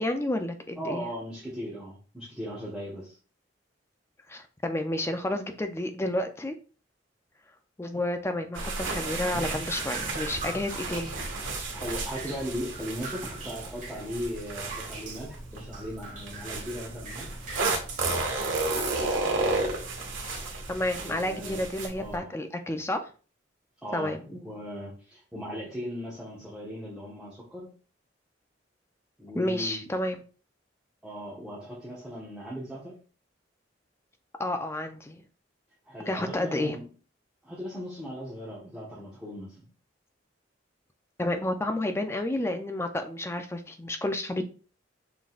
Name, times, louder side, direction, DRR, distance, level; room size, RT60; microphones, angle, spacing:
voice 1, 0.0-1.1 4.3-6.6 7.8-11.1 20.7-23.0 23.9-24.2 29.3-30.2 34.4-35.2 36.1-36.8 41.2-44.4, left 1 dB, 15° left, 6 dB, 0.4 m, -30 dB
voice 2, 0.8-3.2 11.7-17.4 21.0-21.6 22.0-22.3 23.8-27.7 29.2-29.9 31.0-32.9 35.8-36.9 37.4-39.6, equal, 5° right, -9 dB, 1.2 m, -38 dB
sound 1, 8.5-15.6 16.3-21.9, right 3 dB, 90° right, 1.4 m, -32 dB
Drip, 9.3-22.2, right 2 dB, 40° right, 1.4 m, -43 dB
5.9 x 3.7 x 2.4 m, 0.38 s
head